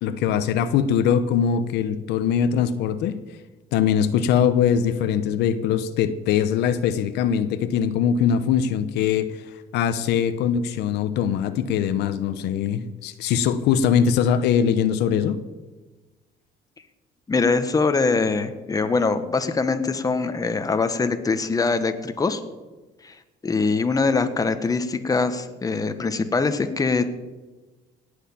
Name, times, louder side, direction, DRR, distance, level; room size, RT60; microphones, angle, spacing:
voice 1, 0.0-3.2 3.7-9.4 9.7-15.4, left 8 dB, 85° left, 11 dB, 1.0 m, -22 dB
voice 2, 17.3-22.4 23.0-23.1 23.4-27.1, left 4 dB, 20° left, 8 dB, 1.2 m, -23 dB
17.5 x 6.5 x 8.7 m, 1.2 s
cardioid pair, 110°, 17 cm